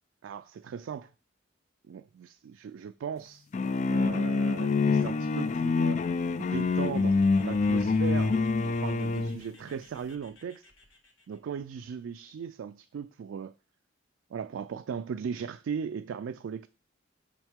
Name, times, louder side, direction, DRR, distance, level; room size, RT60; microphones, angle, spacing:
voice 1, 0.2-1.1 1.9-3.5 3.9-6.0 6.4-8.4 8.6-10.7 11.3-13.5 14.3-16.7, right 7 dB, 75° right, 0.3 m, -37 dB
sound 1, 3.5-9.4, left 4 dB, 35° left, 0.3 m, -26 dB
sound 2, 5.7-11.4, left 3 dB, 85° left, 1.6 m, -56 dB
6.4 x 5.9 x 3.5 m
head